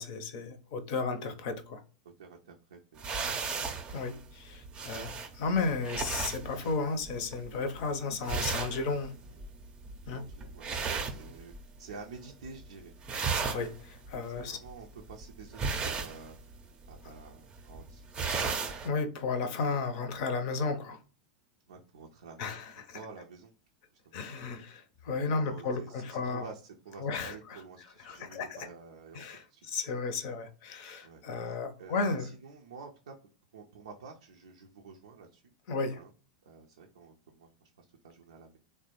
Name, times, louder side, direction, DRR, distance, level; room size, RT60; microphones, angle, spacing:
voice 1, 0.0-1.8 3.9-9.1 10.1-10.2 13.1-14.6 18.8-21.0 22.4-23.0 24.1-26.5 27.0-27.6 28.0-28.6 29.1-32.3 35.7-36.0, left 4 dB, 55° left, 0.6 m, -34 dB
voice 2, 2.2-3.5 4.7-4.9 9.3-9.4 10.1-11.5 11.8-12.9 14.3-16.4 16.9-18.6 21.7-22.6 22.9-23.5 24.0-24.2 25.3-29.7 31.0-33.1 33.5-35.5 35.9-36.1 36.5-38.6, right 5 dB, 70° right, 0.4 m, -50 dB
sound 1, 3.0-11.9 12.2-12.7 12.9-18.9, right 5 dB, 25° right, 0.5 m, -36 dB
3.2 x 2.1 x 2.9 m
figure-of-eight pair, 90°, 4 cm